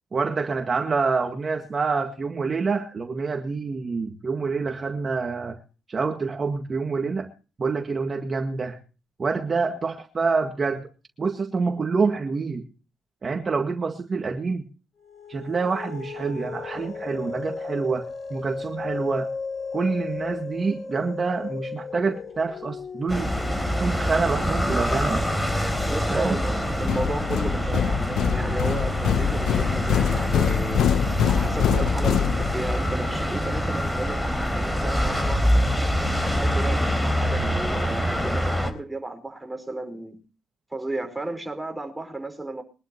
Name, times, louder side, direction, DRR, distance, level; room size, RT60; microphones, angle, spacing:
voice 1, 0.1-5.6 5.9-7.3 7.6-8.8 9.2-10.9 11.2-12.6 13.2-14.6 15.3-19.3 19.7-23.3 23.6-25.3 26.1-26.4, right 4 dB, 35° right, 1.9 m, -27 dB
sound 1, 15.0-27.8, left 4 dB, 45° left, 6.2 m, -37 dB
sound 2, 23.1-38.7, equal, 10° left, 3.7 m, -25 dB
voice 2, 25.9-30.8 31.3-35.5 36.2-40.2 40.7-42.6, right 2 dB, 10° right, 4.7 m, -33 dB
sound 3, 26.9-32.9, left 9 dB, 75° left, 0.7 m, -25 dB
23.0 x 11.5 x 3.0 m
cardioid pair, 90°, 0 cm